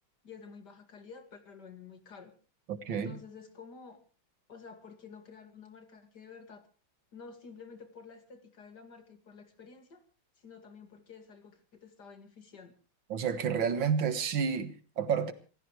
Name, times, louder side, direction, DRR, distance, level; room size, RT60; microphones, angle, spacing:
voice 1, 0.2-2.3 2.9-4.0 4.5-6.6 7.1-10.0 10.4-12.7, left 5 dB, 60° left, 2.8 m, -50 dB
voice 2, 2.7-3.2 13.1-15.3, right 7 dB, 80° right, 2.2 m, -30 dB
27.5 x 15.0 x 3.2 m
omnidirectional pair, 2.1 m